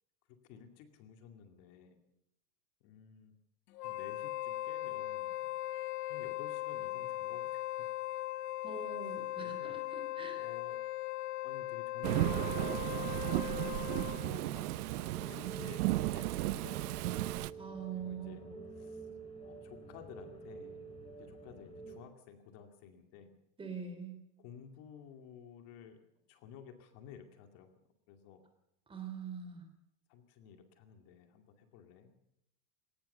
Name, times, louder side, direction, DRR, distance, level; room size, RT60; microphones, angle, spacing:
voice 1, 0.5-2.0 2.8-3.3 3.8-5.4 6.1-7.9 9.4-9.8 10.3-10.8 11.4-13.3 13.7-17.2 17.5-17.6 17.9-18.4 18.8-19.1 19.4-20.8 21.2-23.4 24.4-26.0 26.3-27.7 28.1-28.4 30.1-32.2, left 8 dB, 45° left, 6 dB, 2.4 m, -54 dB
Wind instrument woodwind instrument, 3.7-14.3, left 15 dB, 80° left, 1.4 m, -39 dB
voice 2, 8.6-10.4 17.5-18.5 23.6-24.2 28.9-29.7, right 6 dB, 10° right, 6 dB, 3.4 m, -44 dB
Thunderstorm / Rain, 12.0-17.5, right 17 dB, 75° right, 0.8 m, -34 dB
sound 1, 15.0-22.0, right 3 dB, 15° left, 3.1 m, -49 dB
20.5 x 18.5 x 6.8 m, 0.78 s
supercardioid pair, 165°, 46 cm